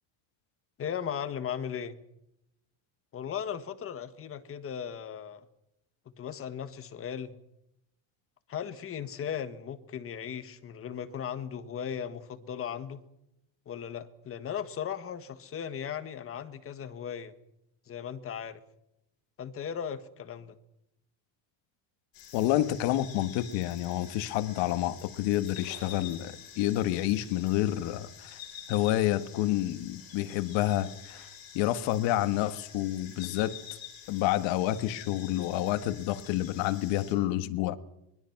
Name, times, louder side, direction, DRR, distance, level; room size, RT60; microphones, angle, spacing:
voice 1, 0.8-2.0 3.1-5.4 6.2-7.3 8.5-13.0 13.6-17.3 17.8-18.6 19.4-20.6, left 8 dB, 25° left, 1.5 m, -37 dB
sound 1, 22.1-37.1, left 9 dB, 45° left, 7.7 m, -48 dB
voice 2, 22.3-28.4 28.7-31.3 31.5-33.5 34.1-37.8, left 14 dB, 65° left, 1.8 m, -29 dB
24.5 x 22.0 x 6.0 m
cardioid pair, 175°, 50 cm